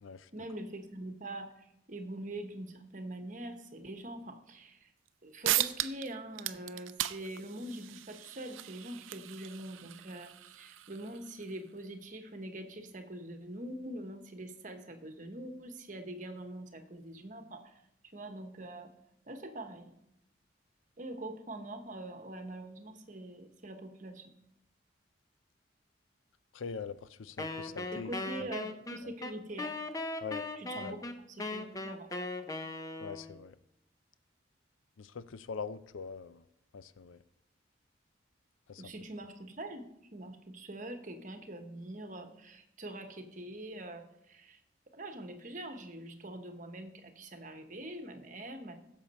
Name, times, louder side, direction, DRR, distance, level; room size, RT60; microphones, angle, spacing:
voice 1, 0.3-4.9 5.2-17.8 18.1-18.9 19.3-19.9 21.0-24.2 27.9-29.7 30.6-32.1 38.8-39.8 40.1-44.6 44.9-48.8, right 1 dB, 40° right, 1.1 m, -44 dB
sound 1, 5.1-5.2 5.4-6.1 6.3-11.5, right 14 dB, 80° right, 0.5 m, -37 dB
voice 2, 26.5-28.1 28.4-28.5 29.0-29.1 30.2-30.5 30.8-31.0 33.0-33.6 35.0-36.4 36.7-37.2 38.7-38.9, left 5 dB, 85° left, 0.5 m, -43 dB
Wind instrument woodwind instrument, 27.4-33.4, left 2 dB, 20° left, 0.6 m, -39 dB
16.0 x 7.2 x 4.2 m
head